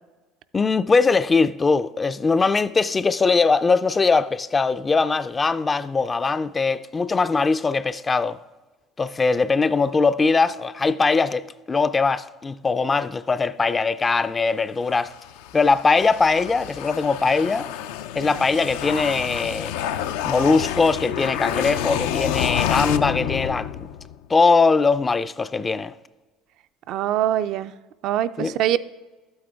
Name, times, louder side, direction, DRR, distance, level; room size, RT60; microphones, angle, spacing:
voice 1, 0.5-8.4 9.0-15.1 15.5-17.7 18.2-19.7 20.2-23.7 24.3-25.9 28.4-28.6, left 4 dB, 20° left, 0.3 m, -21 dB
sound 1, 14.9-24.3, left 10 dB, 90° left, 0.4 m, -29 dB
voice 2, 26.9-27.7 28.0-28.8, right 12 dB, 60° right, 0.4 m, -23 dB
12.0 x 8.7 x 3.5 m
supercardioid pair, 110°, 0 cm